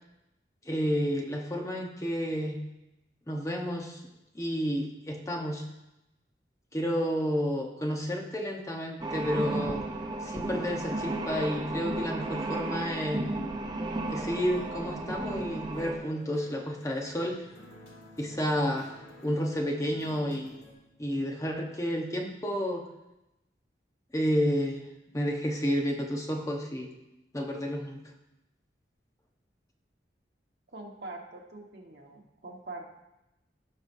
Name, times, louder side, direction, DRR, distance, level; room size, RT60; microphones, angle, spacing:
voice 1, 0.6-2.6 3.3-4.0 4.3-5.6 6.7-9.8 10.2-13.2 14.1-17.4 18.2-18.9 19.2-20.5 21.0-22.8 24.1-24.9 25.1-26.9 27.3-28.0, equal, 20° left, 0 dB, 1.0 m, -30 dB
sound 1, 9.0-16.0, right 2 dB, 25° right, 0.9 m, -34 dB
sound 2, 14.2-20.7, left 1 dB, 80° left, 2.3 m, -52 dB
voice 2, 30.7-32.9, right 2 dB, 65° right, 0 dB, 1.4 m, -43 dB
16.5 x 5.5 x 2.7 m, 0.91 s
head